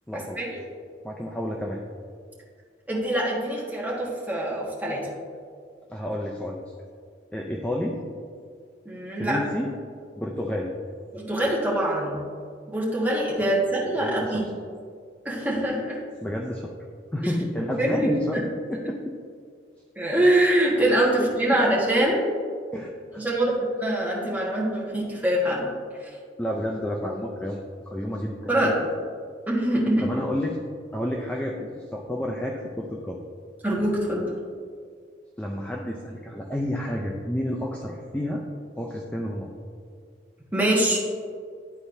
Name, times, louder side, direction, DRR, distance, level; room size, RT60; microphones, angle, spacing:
voice 1, 0.1-0.4 1.0-1.8 5.9-6.6 7.3-8.0 9.1-9.7 10.2-10.7 14.0-14.4 16.2-16.7 17.1-18.4 18.7-19.0 21.2-21.6 22.7-23.2 26.4-28.5 30.0-30.6 30.9-33.2 35.4-38.5 38.8-39.5, left 1 dB, 5° left, -1 dB, 0.4 m, -30 dB
voice 2, 2.9-5.1 8.8-9.4 11.1-12.2 12.7-14.5 15.2-16.0 17.2-17.3 17.8-17.9 19.9-22.3 23.1-25.7 26.0-26.1 28.5-28.7 29.5-30.1 33.6-34.3 40.5-41.0, right 1 dB, 10° right, -6 dB, 1.4 m, -24 dB
11.5 x 4.2 x 2.7 m, 2.1 s
head